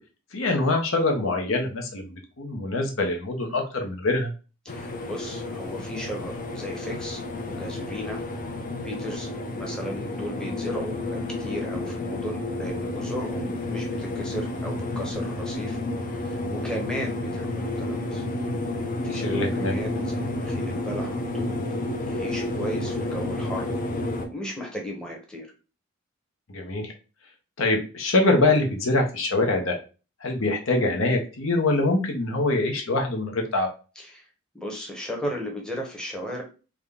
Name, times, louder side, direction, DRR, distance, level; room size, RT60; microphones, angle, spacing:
voice 1, 0.3-4.3 19.1-19.8 26.5-26.9 27.6-29.8 30.2-33.7, left 2 dB, 70° left, 2 dB, 0.8 m, -24 dB
voice 2, 4.6-8.2 8.8-15.8 16.1-18.2 19.0-21.6 22.0-23.7 24.3-25.5 34.0-34.3 34.5-36.4, equal, 5° left, -1 dB, 0.8 m, -35 dB
sound 1, 4.7-24.3, left 2 dB, 40° left, 0.5 m, -30 dB
3.6 x 2.2 x 3.5 m, 0.33 s
head